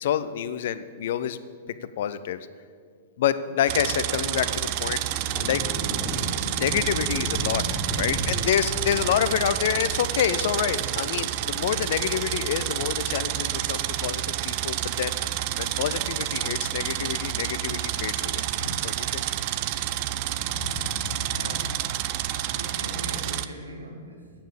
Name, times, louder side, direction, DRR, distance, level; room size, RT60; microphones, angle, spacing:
voice 1, 0.0-1.4 2.0-2.4 3.2-5.6 6.5-15.2 15.6-19.2 20.6-21.5, left 10 dB, 55° left, 13 dB, 0.5 m, -28 dB
sound 1, 3.7-23.5, right 13 dB, 40° right, 0.5 m, -29 dB
sound 2, 5.1-10.7, right 1 dB, 15° left, 1.8 m, -34 dB
voice 2, 21.2-22.0 22.3-24.3, equal, 80° right, 3 dB, 1.6 m, -41 dB
9.1 x 7.3 x 8.6 m, 2.1 s
figure-of-eight pair, 100°, 0 cm